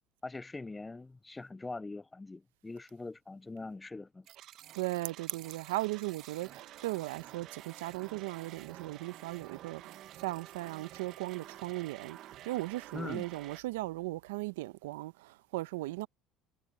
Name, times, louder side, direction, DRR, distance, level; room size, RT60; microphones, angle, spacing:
voice 1, 0.2-4.2 12.9-13.2, left 3 dB, 15° left, 0.3 m, -42 dB
sound 1, 4.3-13.6, right 13 dB, 60° right, 1.2 m, -50 dB
voice 2, 4.7-12.2 12.4-16.1, right 19 dB, 85° right, 0.7 m, -37 dB
supercardioid pair, 85°, 0 cm